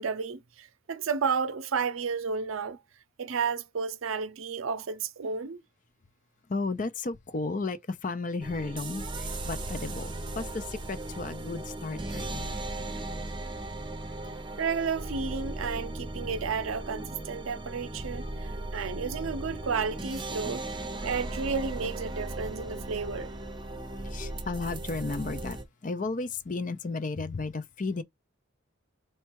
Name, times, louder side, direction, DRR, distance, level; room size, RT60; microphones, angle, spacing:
voice 1, 0.0-2.8 3.2-5.6 14.2-14.3 14.6-20.7 21.0-23.4, right 5 dB, 80° right, 0.6 m, -32 dB
voice 2, 6.5-13.0 24.0-28.0, left 3 dB, 40° left, 0.5 m, -34 dB
sound 1, 8.4-25.6, right 2 dB, 25° right, 0.7 m, -37 dB
4.3 x 2.3 x 4.5 m
head